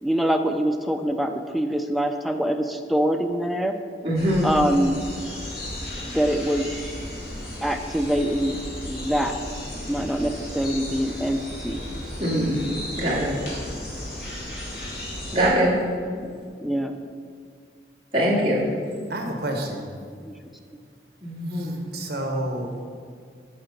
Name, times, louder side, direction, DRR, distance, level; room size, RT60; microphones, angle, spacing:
voice 1, 0.0-3.7 4.4-5.0 6.0-6.7 7.6-8.6 8.9-9.4 9.8-11.8 16.0-17.0 20.2-20.3, equal, ahead, 5 dB, 0.4 m, -24 dB
voice 2, 4.0-4.5 12.2-12.6 13.0-13.6 15.3-15.8 18.1-18.6 21.2-21.8, equal, 30° right, -6 dB, 1.9 m, -22 dB
sound 1, 4.1-15.5, left 1 dB, 55° left, 2.0 m, -35 dB
voice 3, 19.1-19.9 21.5-22.8, right 1 dB, 60° right, 3 dB, 1.2 m, -30 dB
7.5 x 4.8 x 6.6 m, 2.1 s
head